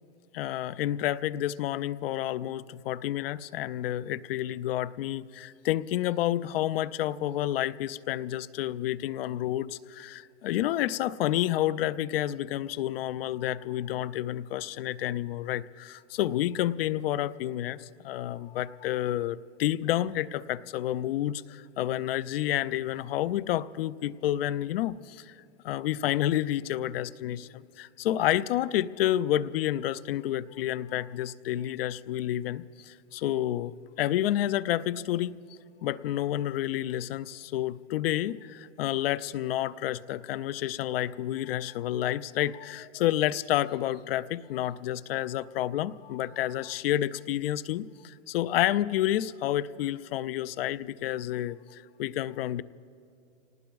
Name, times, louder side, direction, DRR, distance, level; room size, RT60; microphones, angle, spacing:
voice 1, 0.3-25.3 25.6-35.4 35.8-52.6, left 13 dB, 60° left, 16 dB, 0.4 m, -30 dB
29.5 x 19.0 x 2.3 m, 2.4 s
supercardioid pair, 155°, 34 cm